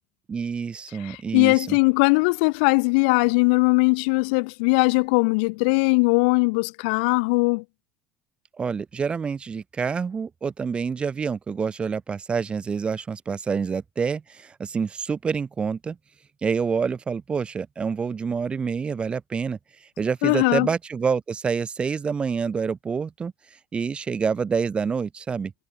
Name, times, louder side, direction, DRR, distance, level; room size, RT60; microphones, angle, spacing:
voice 1, 0.3-1.8 8.6-16.0 16.4-19.6 20.0-23.3 23.7-25.5, right 5 dB, 20° right, 0.3 m, -27 dB
voice 2, 1.0-7.6 20.2-20.7, left 31 dB, 75° left, 0.4 m, -20 dB
supercardioid pair, 130°, 5 cm